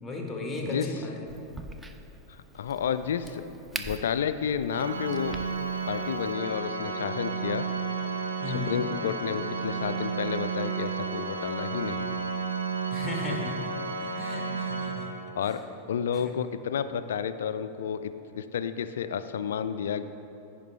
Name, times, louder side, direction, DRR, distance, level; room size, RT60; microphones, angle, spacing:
voice 1, 0.0-1.3 8.4-8.8 12.9-13.7 14.0-15.1 15.4-15.6 16.1-16.3, left 2 dB, 10° left, 0 dB, 1.4 m, -35 dB
Crack, 1.3-6.3, right 1 dB, 10° right, 0.5 m, -44 dB
voice 2, 2.3-3.4 3.8-5.4 5.9-7.7 8.7-12.3 15.4-15.6 15.9-20.0, left 8 dB, 60° left, 12 dB, 0.3 m, -31 dB
Organ, 4.7-15.5, right 4 dB, 75° right, 0.5 m, -32 dB
15.0 x 5.1 x 3.3 m, 2.8 s
figure-of-eight pair, 90°, 0 cm